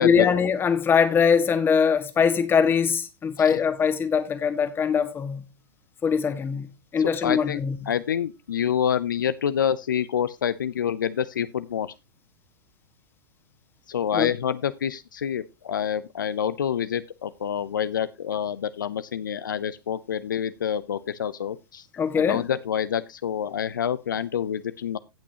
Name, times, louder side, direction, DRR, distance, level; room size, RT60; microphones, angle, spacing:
voice 1, 0.0-5.4 6.0-7.8 14.1-14.3 22.0-22.4, left 6 dB, 20° left, 1.5 m, -22 dB
voice 2, 7.0-7.6 7.9-11.9 13.9-21.9 22.1-25.0, left 8 dB, 75° left, 0.5 m, -27 dB
17.0 x 6.0 x 2.8 m
figure-of-eight pair, 100°, 11 cm